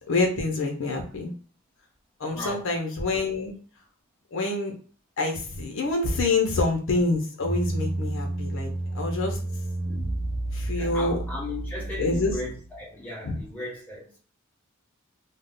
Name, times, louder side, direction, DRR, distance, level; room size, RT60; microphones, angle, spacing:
voice 1, 0.1-1.3 2.2-3.6 4.3-4.7 5.2-9.4 10.5-11.2 12.0-12.4 13.2-13.4, left 3 dB, 60° left, 0.6 m, -26 dB
voice 2, 2.3-2.7 6.1-6.2 9.8-10.1 10.8-14.2, left 2 dB, 10° left, 1.0 m, -37 dB
sound 1, 7.4-12.8, right 1 dB, 45° right, 0.5 m, -31 dB
2.3 x 2.0 x 3.6 m
head